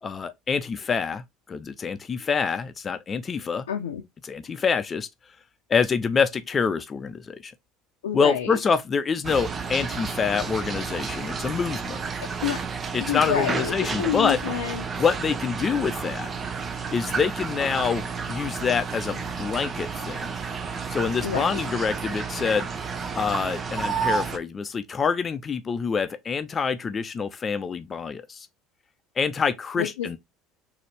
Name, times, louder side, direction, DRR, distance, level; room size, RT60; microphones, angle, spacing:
voice 1, 0.0-3.7 4.2-5.1 5.7-7.5 8.1-12.0 12.9-14.4 15.0-16.3 16.9-20.3 20.9-22.7 23.1-28.5 29.2-30.2, left 5 dB, 35° left, 0.5 m, -26 dB
voice 2, 3.7-4.0 8.0-8.6 12.4-12.6 13.1-14.8 21.2-21.6 29.8-30.2, left 10 dB, 85° left, 0.6 m, -28 dB
sound 1, 9.2-24.4, right 5 dB, 35° right, 0.6 m, -31 dB
4.0 x 2.7 x 3.3 m
hypercardioid pair, 70°, 0 cm